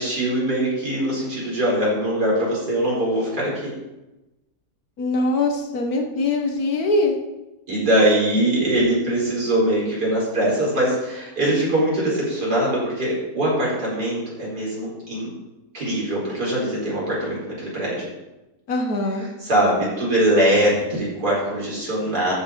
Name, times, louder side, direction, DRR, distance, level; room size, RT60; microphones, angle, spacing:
voice 1, 0.0-3.7 7.7-15.3 15.7-18.1 19.4-22.3, right 1 dB, 80° right, -6 dB, 5.0 m, -22 dB
voice 2, 5.0-7.2 18.7-19.3, left 2 dB, 65° left, 3 dB, 1.8 m, -22 dB
14.0 x 6.3 x 5.1 m, 1.0 s
omnidirectional pair, 1.7 m